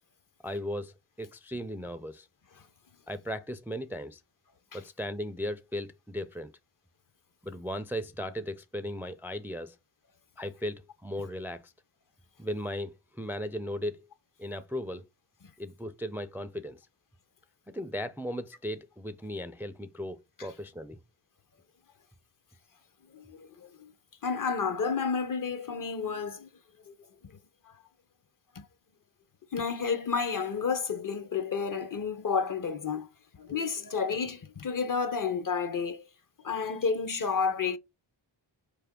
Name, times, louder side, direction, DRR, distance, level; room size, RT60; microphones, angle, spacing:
voice 1, 0.4-2.3 3.1-4.2 4.7-6.5 7.4-9.8 10.4-11.7 12.4-14.0 14.4-15.0 15.6-16.8 17.7-21.0, equal, 5° right, 0.4 m, -37 dB
voice 2, 23.1-23.9 24.2-26.5 26.9-27.0 28.5-28.7 29.5-33.1 33.3-36.1 36.4-37.8, left 5 dB, 45° left, 0.6 m, -31 dB
4.4 x 3.4 x 3.6 m
cardioid pair, 60°, 45 cm